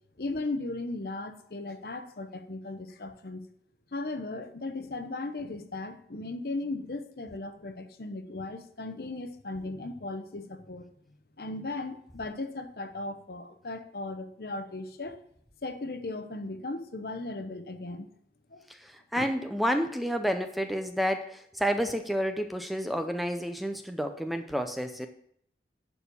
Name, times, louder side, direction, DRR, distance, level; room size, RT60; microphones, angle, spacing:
voice 1, 0.2-3.4 3.9-15.2 15.6-18.1 18.5-18.6 19.2-19.3, left 2 dB, 60° left, 9 dB, 0.8 m, -37 dB
voice 2, 18.8-25.1, equal, ahead, 7 dB, 0.5 m, -30 dB
11.0 x 4.3 x 6.9 m, 0.69 s
head